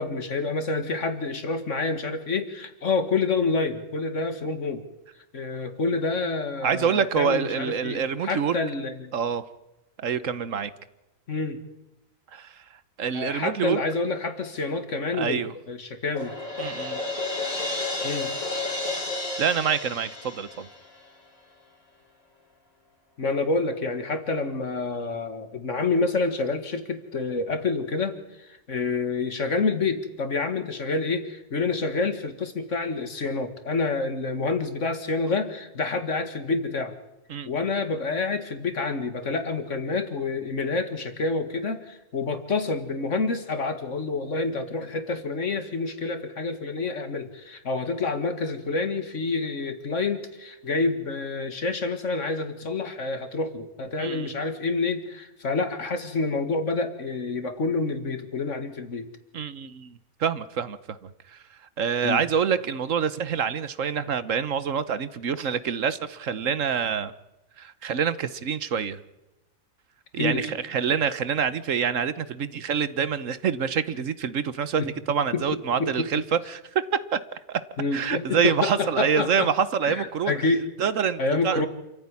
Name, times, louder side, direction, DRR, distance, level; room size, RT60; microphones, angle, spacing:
voice 1, 0.0-4.8 5.3-9.1 11.3-11.6 13.1-15.4 15.7-16.3 18.0-18.3 23.2-36.9 37.5-59.1 62.0-62.2 70.2-70.5 74.8-74.9 75.3-76.1 77.8-79.5 79.8-80.7 81.2-81.7, left 3 dB, 65° left, 9 dB, 2.2 m, -28 dB
voice 2, 6.6-8.6 9.1-9.4 10.0-10.7 12.3-12.6 13.0-13.8 15.1-15.5 16.6-17.0 19.4-20.7 37.3-37.6 54.0-54.3 59.3-61.4 61.8-67.1 67.6-69.0 70.1-76.6 77.1-77.2 77.5-77.6 77.9-80.4 80.8-81.7, right 7 dB, 70° right, 14 dB, 1.4 m, -26 dB
Crash cymbal, 16.1-21.1, left 2 dB, 80° left, 4.8 m, -31 dB
27.5 x 15.0 x 9.8 m, 0.95 s
omnidirectional pair, 1.4 m